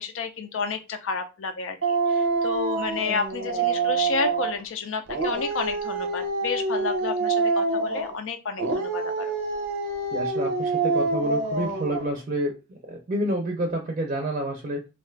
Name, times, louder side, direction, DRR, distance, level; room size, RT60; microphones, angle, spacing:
voice 1, 0.0-1.8 2.2-9.3, left 5 dB, 85° left, 7 dB, 0.4 m, -30 dB
Dog, 1.8-4.6 5.1-8.2 8.6-12.1, right 3 dB, 90° right, 0.6 m, -26 dB
voice 2, 10.1-12.6 12.8-14.9, right 1 dB, 40° right, 2 dB, 0.5 m, -29 dB
2.6 x 2.3 x 3.2 m, 0.28 s
head